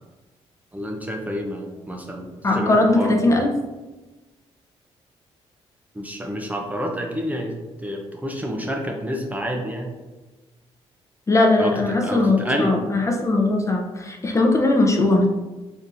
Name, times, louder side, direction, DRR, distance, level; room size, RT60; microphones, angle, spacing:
voice 1, 0.7-3.1 6.0-7.5 7.8-9.9 11.6-11.7 12.0-12.7, equal, 15° right, 1 dB, 0.6 m, -28 dB
voice 2, 2.4-3.5 11.3-15.3, left 2 dB, 25° left, 1 dB, 0.7 m, -19 dB
4.1 x 3.4 x 2.6 m, 1.2 s
cardioid pair, 85°, 12 cm